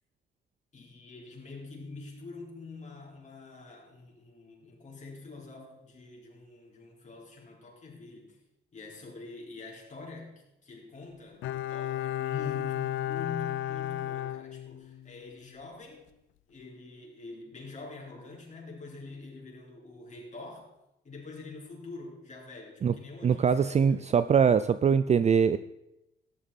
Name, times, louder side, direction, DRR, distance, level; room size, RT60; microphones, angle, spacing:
voice 1, 0.7-8.4 8.7-16.1 16.5-20.7 21.0-24.1, left 3 dB, 35° left, -1 dB, 4.4 m, -45 dB
Bowed string instrument, 11.4-15.2 15.5-15.6, left 13 dB, 80° left, 0.5 m, -33 dB
voice 2, 23.2-25.6, right 7 dB, 35° right, 13 dB, 0.4 m, -23 dB
13.5 x 11.0 x 4.2 m, 0.88 s
cardioid pair, 90°, 20 cm